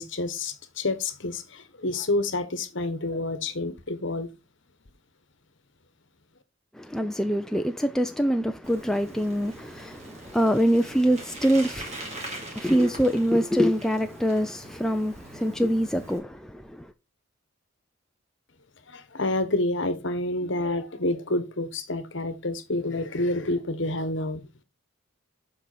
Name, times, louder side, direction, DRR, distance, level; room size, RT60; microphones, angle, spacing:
voice 1, 0.0-4.3 18.9-24.5, left 2 dB, 60° left, 1.2 m, -28 dB
voice 2, 6.7-16.9, equal, ahead, 0.4 m, -25 dB
Bicycle, 8.6-16.2, right 2 dB, 30° right, 2.5 m, -42 dB
7.9 x 5.4 x 4.1 m
head